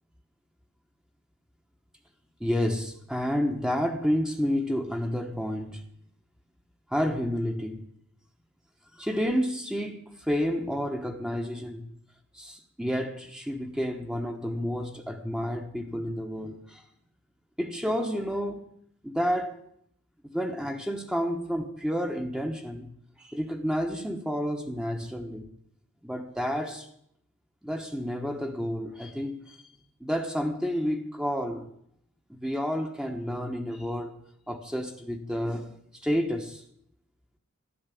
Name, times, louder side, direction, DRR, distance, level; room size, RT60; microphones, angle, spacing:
voice 1, 2.4-5.8 6.9-7.8 8.9-11.9 12.3-16.8 17.6-18.7 19.0-19.6 20.2-25.5 26.0-26.9 27.6-29.6 30.0-31.7 32.3-36.6, equal, 5° right, 1.1 m, -30 dB
12.5 x 11.5 x 8.4 m
head